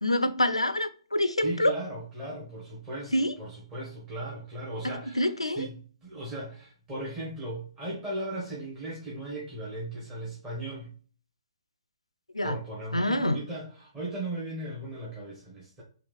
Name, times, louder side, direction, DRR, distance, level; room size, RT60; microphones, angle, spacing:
voice 1, 0.0-1.7 3.1-3.3 4.8-5.7 12.3-12.6 12.9-13.4, left 1 dB, 85° left, 12 dB, 0.4 m, -26 dB
voice 2, 1.4-10.9 12.4-15.8, right 1 dB, 15° right, -6 dB, 1.2 m, -37 dB
3.8 x 3.0 x 3.3 m, 0.42 s
figure-of-eight pair, 125°, 3 cm